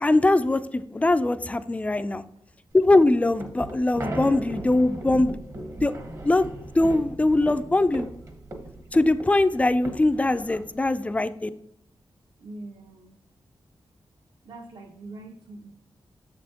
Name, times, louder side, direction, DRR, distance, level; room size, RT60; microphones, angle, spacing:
voice 1, 0.0-2.2 2.7-5.4 5.8-5.9 6.2-6.5 6.7-8.1 8.9-11.5, left 2 dB, 15° left, 12 dB, 0.3 m, -21 dB
sound 1, 2.8-10.9, right 1 dB, 40° right, 1.0 m, -38 dB
voice 2, 12.4-13.2 14.4-15.7, right 2 dB, 65° right, 3 dB, 1.1 m, -42 dB
6.8 x 6.2 x 2.8 m, 0.78 s
wide cardioid pair, 140°, 9 cm